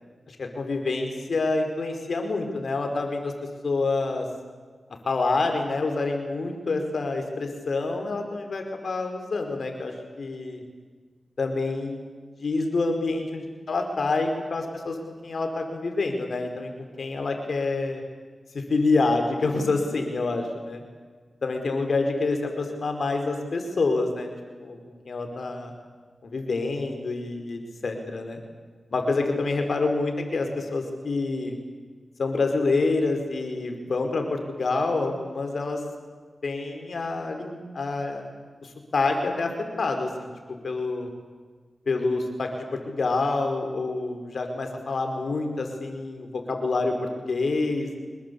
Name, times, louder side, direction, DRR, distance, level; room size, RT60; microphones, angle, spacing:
voice 1, 0.3-3.3 3.6-4.3 5.0-10.6 11.4-12.0 12.4-15.0 15.2-18.0 18.5-20.8 21.4-24.3 24.6-24.8 25.0-25.7 26.2-28.4 28.9-31.5 32.2-35.8 36.4-38.3 38.6-40.3 40.6-41.1 41.8-48.0, left 3 dB, 80° left, 4 dB, 5.1 m, -27 dB
26.0 x 21.0 x 8.6 m, 1.5 s
cardioid pair, 50°, 0 cm